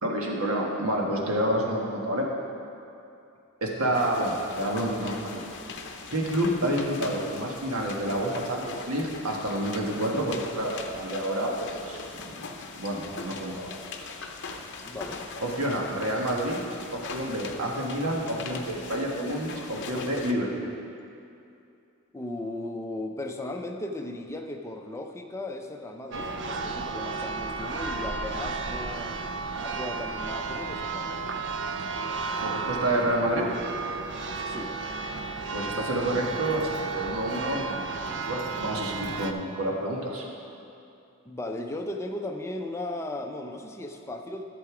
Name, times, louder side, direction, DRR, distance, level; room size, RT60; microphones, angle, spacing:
voice 1, 0.0-2.3 3.6-5.5 6.1-12.0 12.8-13.8 15.4-16.6 16.9-20.7 32.4-33.5 35.5-40.2, right 1 dB, 75° right, -1 dB, 1.5 m, -29 dB
sound 1, 3.9-20.3, left 4 dB, 55° left, 0.7 m, -41 dB
voice 2, 14.8-15.2 22.1-29.2 29.6-31.3 34.5-34.7 41.3-44.4, left 1 dB, 10° left, 3 dB, 0.5 m, -36 dB
Church bell, 26.1-39.3, right 4 dB, 55° right, 0.5 m, -33 dB
11.5 x 6.9 x 4.9 m, 2.6 s
head